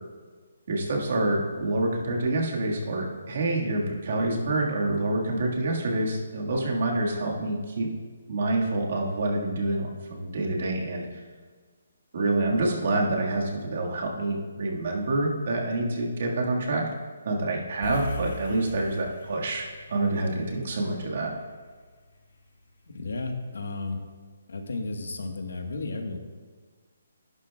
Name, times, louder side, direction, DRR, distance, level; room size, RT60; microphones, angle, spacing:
voice 1, 0.7-7.9 8.3-11.2 12.1-16.8 17.3-21.3, right 2 dB, 45° right, -1 dB, 1.7 m, -27 dB
sound 1, 17.8-22.3, left 1 dB, 65° left, 1.6 m, -40 dB
voice 2, 22.9-24.0 24.5-26.2, left 3 dB, 85° left, 5 dB, 1.3 m, -33 dB
11.5 x 11.5 x 2.3 m, 1.5 s
hypercardioid pair, 175°, 0 cm